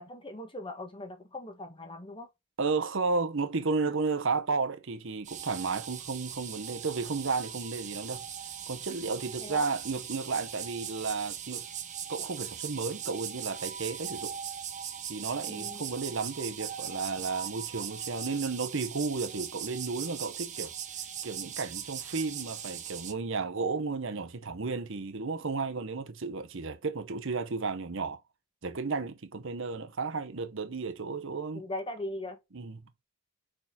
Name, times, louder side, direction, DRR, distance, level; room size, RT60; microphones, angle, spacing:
voice 1, 0.0-2.3 9.4-9.7 15.5-15.8 31.5-32.4, left 1 dB, 25° left, 1.3 m, -39 dB
voice 2, 2.6-8.2 8.7-11.6 12.1-14.3 15.1-20.7 21.2-28.2 28.6-31.6 32.5-32.8, right 4 dB, 60° right, 0.9 m, -33 dB
sound 1, 5.2-23.1, right 9 dB, 35° right, 0.9 m, -39 dB
5.0 x 4.6 x 5.8 m
head